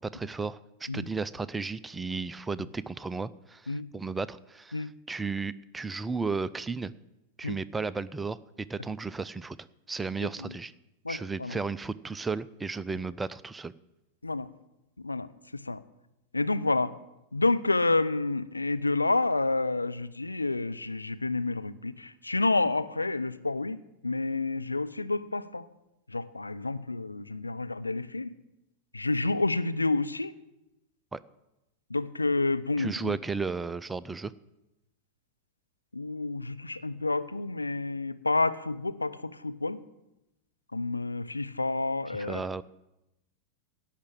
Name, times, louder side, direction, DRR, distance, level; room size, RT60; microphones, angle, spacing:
voice 1, 0.0-6.9 7.4-8.4 8.7-9.6 9.9-10.7 11.1-13.7 31.1-31.2 32.8-34.3 42.2-42.6, right 4 dB, 10° right, 17 dB, 0.4 m, -34 dB
voice 2, 11.0-11.6 14.2-14.5 15.0-15.3 15.5-15.8 16.3-16.9 17.3-25.7 26.1-28.3 28.9-30.3 31.9-33.2 35.9-39.8 40.7-42.4, left 3 dB, 80° left, 12 dB, 0.6 m, -29 dB
17.0 x 5.9 x 8.9 m, 0.92 s
figure-of-eight pair, 90°, 0 cm